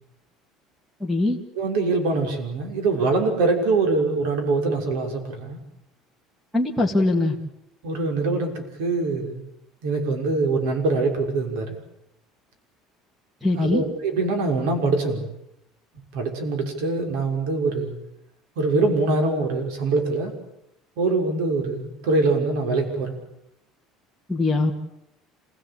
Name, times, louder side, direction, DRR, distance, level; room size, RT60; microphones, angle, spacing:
voice 1, 1.0-1.4 6.5-7.4 13.4-13.8 24.3-24.7, left 2 dB, ahead, 4 dB, 2.0 m, -21 dB
voice 2, 1.6-5.6 7.8-9.4 9.8-11.8 13.5-15.3 16.1-18.0 18.6-20.3 21.0-23.2, right 3 dB, 85° right, 4 dB, 6.2 m, -23 dB
27.5 x 17.5 x 8.9 m, 0.85 s
cardioid pair, 180°, 0 cm